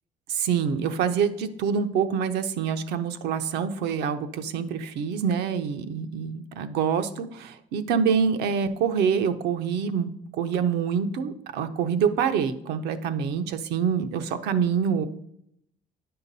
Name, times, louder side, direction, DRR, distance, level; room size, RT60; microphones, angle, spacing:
voice 1, 0.3-15.1, right 7 dB, 85° right, 9 dB, 0.7 m, -26 dB
10.0 x 5.7 x 4.1 m, 0.75 s
cardioid pair, 110°, 17 cm